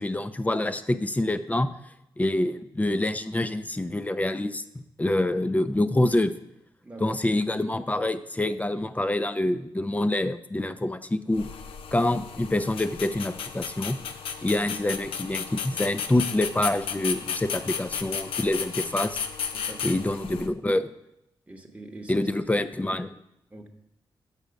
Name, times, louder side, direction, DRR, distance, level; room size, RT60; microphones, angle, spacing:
voice 1, 0.0-1.7 2.2-6.3 7.0-11.5 11.9-14.0 14.4-19.2 19.8-20.9 22.1-23.1, left 1 dB, 15° left, 12 dB, 0.6 m, -26 dB
voice 2, 6.8-7.2 19.5-20.1 21.5-22.3 23.5-23.7, right 2 dB, 15° right, 2 dB, 1.0 m, -43 dB
sound 1, 11.3-20.5, left 7 dB, 85° left, 0.5 m, -34 dB
6.9 x 6.1 x 5.1 m, 0.83 s
cardioid pair, 60°, 9 cm